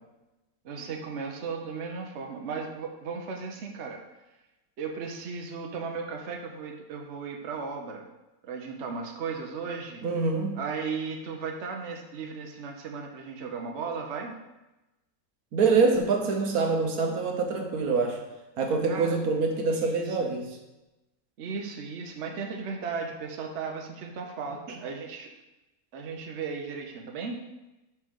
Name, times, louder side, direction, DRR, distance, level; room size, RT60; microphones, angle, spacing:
voice 1, 0.6-4.0 4.8-8.0 8.4-10.0 10.6-14.4 18.9-19.2 19.7-20.4 21.4-25.3 25.9-27.4, right 5 dB, 55° right, 2 dB, 1.0 m, -36 dB
voice 2, 10.0-10.6 15.5-18.2 18.6-20.6, right 4 dB, 75° right, 2 dB, 1.4 m, -25 dB
5.5 x 4.5 x 6.2 m, 1.0 s
omnidirectional pair, 1.6 m